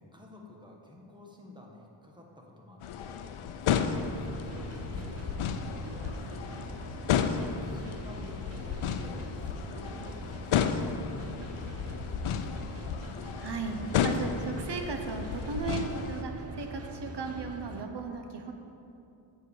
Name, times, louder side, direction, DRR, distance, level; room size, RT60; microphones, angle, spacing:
voice 1, 0.0-6.7 7.3-12.8, left 1 dB, 10° right, -1 dB, 1.3 m, -51 dB
sound 1, 2.8-16.2, left 7 dB, 85° left, 0.6 m, -33 dB
sound 2, 3.9-17.9, right 3 dB, 30° right, 0.6 m, -43 dB
voice 2, 13.4-18.5, right 4 dB, 55° right, 4 dB, 0.9 m, -36 dB
7.7 x 4.7 x 6.8 m, 2.8 s
wide cardioid pair, 80°, 48 cm